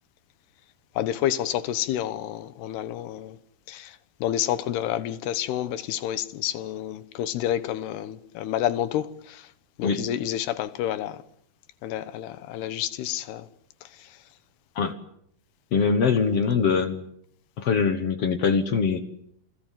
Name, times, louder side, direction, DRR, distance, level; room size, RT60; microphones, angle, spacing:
voice 1, 1.0-3.4 3.7-9.5 9.8-11.2 11.8-13.5 13.8-14.1, left 11 dB, 80° left, 3.2 m, -29 dB
voice 2, 15.7-17.0 17.6-19.0, left 5 dB, 60° left, 1.6 m, -23 dB
28.0 x 20.5 x 7.6 m
omnidirectional pair, 4.6 m